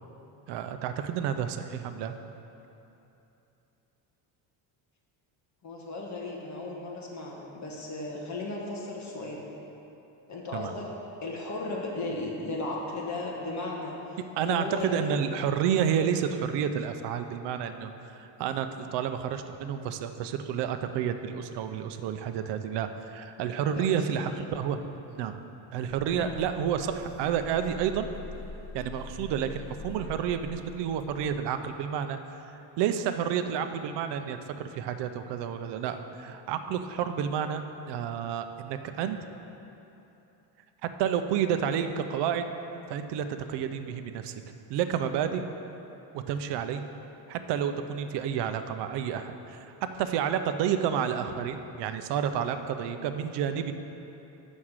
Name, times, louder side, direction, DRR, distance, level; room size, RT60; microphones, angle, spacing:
voice 1, 0.5-2.1 10.5-10.7 14.4-24.8 25.1-25.4 25.7-28.1 28.7-32.2 32.5-39.2 41.0-42.5 42.9-44.3 44.7-45.4 46.1-46.8 47.3-53.7, right 8 dB, 60° right, 9 dB, 0.6 m, -30 dB
voice 2, 5.6-9.5 10.3-10.9 11.2-14.0 14.4-15.2 23.7-24.0 26.2-26.4, left 2 dB, 35° left, -2 dB, 1.4 m, -35 dB
sound 1, 25.9-31.3, left 3 dB, 55° left, 0.5 m, -44 dB
6.4 x 6.2 x 7.3 m, 2.9 s
cardioid pair, 160°, 47 cm